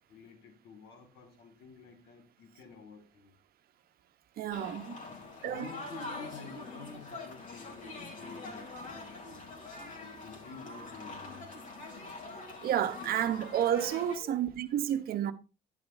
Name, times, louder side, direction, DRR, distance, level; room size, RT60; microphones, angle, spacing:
voice 1, 0.1-3.3 5.1-5.2 5.4-9.5 10.0-11.5 14.2-14.4, left 4 dB, 80° left, 2.3 m, -50 dB
voice 2, 4.4-5.0 5.4-5.7 12.6-15.3, right 10 dB, 60° right, 1.1 m, -30 dB
sound 1, 4.5-14.2, left 3 dB, 50° left, 3.4 m, -44 dB
10.5 x 10.5 x 2.7 m
cardioid pair, 110°, 17 cm